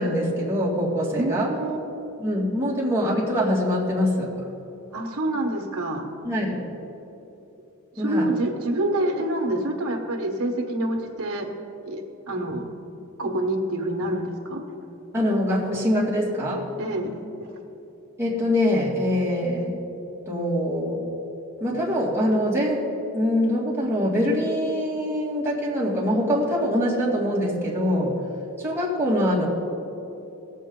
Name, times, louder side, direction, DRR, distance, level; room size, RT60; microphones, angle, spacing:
voice 1, 0.0-1.5 2.2-4.3 6.2-6.6 8.0-8.3 15.1-16.7 18.2-19.8 20.3-21.0 21.6-22.9 23.1-28.2 28.6-29.5, equal, 10° right, -6 dB, 2.1 m, -24 dB
voice 2, 1.1-1.8 4.9-6.1 8.0-11.5 11.9-12.7 13.2-14.6 16.8-17.1 17.4-17.5, right 1 dB, 80° right, 1 dB, 1.3 m, -27 dB
17.5 x 7.4 x 3.8 m, 3.0 s
head